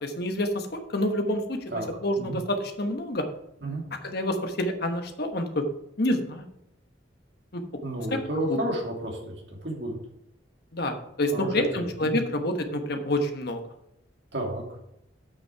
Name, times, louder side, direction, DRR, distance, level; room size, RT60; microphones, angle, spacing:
voice 1, 0.0-1.6 2.0-3.2 4.0-5.6 6.0-6.4 7.5-7.6 8.5-8.6 10.7-13.6, left 1 dB, 60° left, 6 dB, 1.2 m, -28 dB
voice 2, 7.8-10.0 11.3-12.2 14.3-14.6, right 1 dB, 65° right, -1 dB, 2.7 m, -31 dB
8.4 x 6.4 x 4.7 m, 0.80 s
head